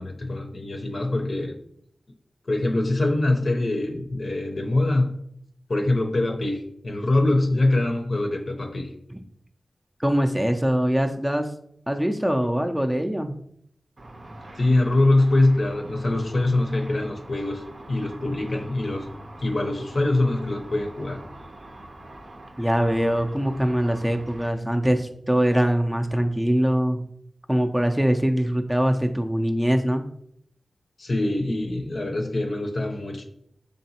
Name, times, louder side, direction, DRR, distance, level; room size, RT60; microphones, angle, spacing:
voice 1, 0.0-1.5 2.4-5.2 5.7-8.9 14.6-19.1 19.4-21.2 31.0-33.2, left 2 dB, 65° left, 3 dB, 0.6 m, -23 dB
voice 2, 10.0-11.5 11.9-13.4 22.6-27.0 27.5-30.1, equal, 5° right, 4 dB, 0.4 m, -23 dB
Car / Traffic noise roadway noise / Engine, 14.0-24.5, right 1 dB, 60° right, 0.5 m, -44 dB
3.9 x 3.3 x 2.8 m, 0.68 s
cardioid pair, 50°, 0 cm